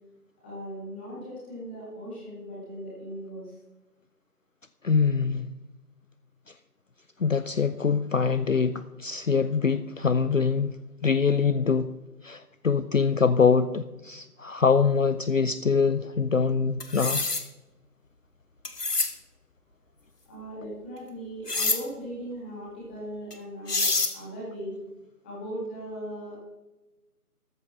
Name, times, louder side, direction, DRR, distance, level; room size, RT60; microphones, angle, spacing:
voice 1, 0.4-3.5 20.3-23.9 24.1-24.8 25.2-26.3, equal, 5° left, -6 dB, 1.9 m, -38 dB
voice 2, 4.8-5.5 7.2-10.7 11.0-11.9 12.2-17.2, left 5 dB, 55° left, 13 dB, 0.6 m, -24 dB
sound 1, 16.8-17.4 18.7-19.1 21.5-21.8 23.3-23.4 23.7-24.1, left 3 dB, 85° left, 1.8 m, -26 dB
14.0 x 10.5 x 4.3 m, 1.1 s
figure-of-eight pair, 165°, 46 cm